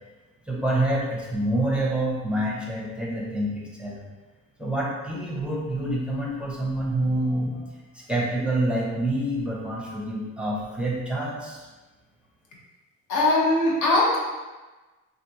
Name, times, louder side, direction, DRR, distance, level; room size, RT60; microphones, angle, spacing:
voice 1, 0.5-4.0 4.6-11.7, right 1 dB, 5° right, -5 dB, 0.7 m, -27 dB
voice 2, 13.1-14.2, left 2 dB, 80° left, -4 dB, 1.0 m, -20 dB
3.4 x 2.5 x 2.8 m, 1.2 s
cardioid pair, 90°, 30 cm